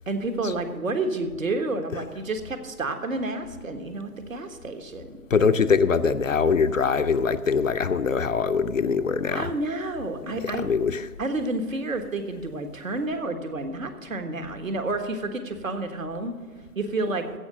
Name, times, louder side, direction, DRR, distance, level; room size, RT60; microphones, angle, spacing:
voice 1, 0.1-5.1 9.3-10.7 11.2-16.3 16.7-17.2, right 2 dB, 60° right, 6 dB, 1.5 m, -30 dB
voice 2, 5.3-9.5 10.2-11.1, left 5 dB, 60° left, 10 dB, 0.6 m, -23 dB
15.5 x 5.8 x 6.5 m, 1.5 s
figure-of-eight pair, 145°, 45 cm